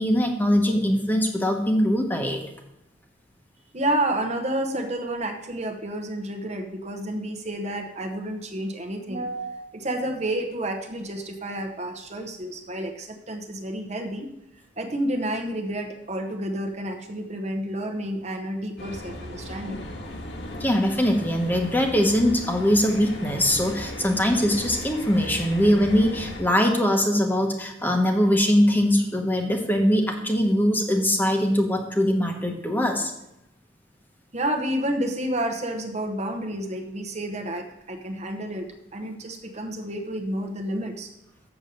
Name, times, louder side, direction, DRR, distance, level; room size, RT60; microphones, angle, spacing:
voice 1, 0.0-2.4 20.6-33.1, equal, 10° left, 3 dB, 1.1 m, -22 dB
voice 2, 3.7-14.3 14.8-19.9 34.3-38.7 38.9-41.1, right 1 dB, 35° right, 4 dB, 0.9 m, -30 dB
sound 1, 18.8-26.4, left 1 dB, 65° left, 1.7 m, -37 dB
7.1 x 7.0 x 6.6 m, 0.85 s
head